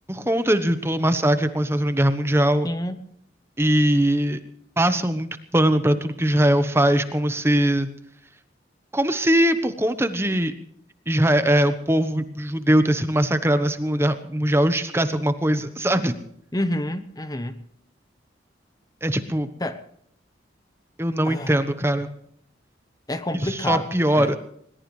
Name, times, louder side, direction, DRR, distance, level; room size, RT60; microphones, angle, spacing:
voice 1, 0.1-2.7 3.6-4.4 4.8-7.9 8.9-10.5 11.1-16.1 19.0-19.5 21.0-22.1 23.4-24.4, right 1 dB, 15° right, 1.0 m, -21 dB
voice 2, 2.6-3.0 16.5-17.6 19.6-19.8 21.2-21.6 23.1-23.9 24.1-24.3, left 1 dB, 20° left, 0.9 m, -28 dB
21.0 x 20.0 x 3.2 m
head